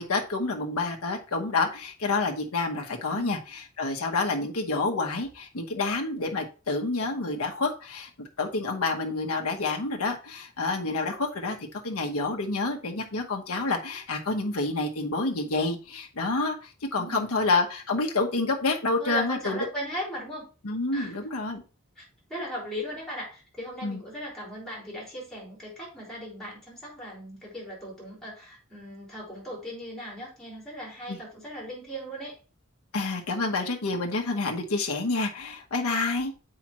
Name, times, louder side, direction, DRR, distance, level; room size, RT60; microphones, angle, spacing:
voice 1, 0.0-8.1 8.4-19.7 20.6-21.6 23.8-24.0 31.1-31.2 32.9-36.3, left 3 dB, 75° left, 1 dB, 1.0 m, -28 dB
voice 2, 16.9-17.4 19.0-20.5 20.9-21.2 22.0-22.1 22.3-32.4, equal, ahead, -4 dB, 3.5 m, -38 dB
7.4 x 4.9 x 3.0 m, 0.34 s
head